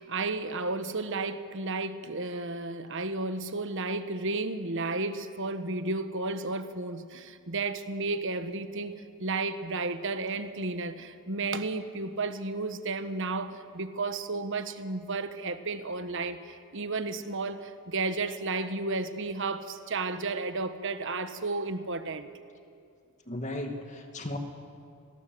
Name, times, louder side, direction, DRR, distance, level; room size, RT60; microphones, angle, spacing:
voice 1, 0.0-22.3, right 3 dB, 55° right, 10 dB, 1.3 m, -33 dB
voice 2, 23.3-24.4, left 1 dB, 30° left, 4 dB, 2.5 m, -35 dB
29.0 x 21.0 x 7.9 m, 2.4 s
head